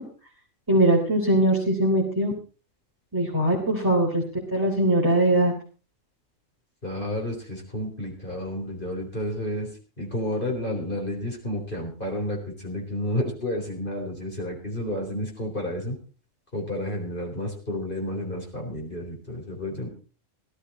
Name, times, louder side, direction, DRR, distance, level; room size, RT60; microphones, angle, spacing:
voice 1, 0.7-2.3 3.1-4.2 4.5-5.5, right 1 dB, 15° right, -4 dB, 3.5 m, -21 dB
voice 2, 6.8-9.7 10.0-16.0 16.5-19.9, left 1 dB, 40° left, 0 dB, 4.2 m, -31 dB
16.5 x 13.5 x 4.2 m, 0.36 s
omnidirectional pair, 1.4 m